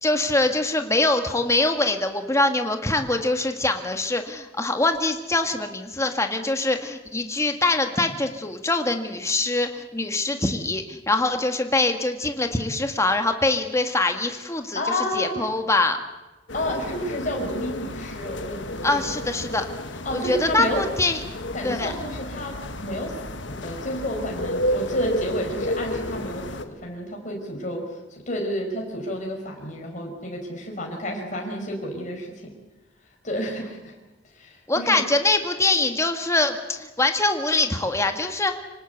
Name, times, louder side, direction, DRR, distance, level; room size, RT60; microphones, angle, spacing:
voice 1, 0.0-14.8 15.1-16.0 18.8-19.6 20.1-21.2 21.6-21.9 34.7-38.6, left 2 dB, 15° left, 6 dB, 1.7 m, -23 dB
voice 2, 14.7-15.5 16.5-19.1 20.0-20.8 21.5-32.5 33.2-33.9 34.3-35.0, equal, 40° left, 0 dB, 5.2 m, -31 dB
sound 1, 16.5-26.6, left 1 dB, 65° left, 1.6 m, -31 dB
25.5 x 19.0 x 8.0 m, 1.1 s
head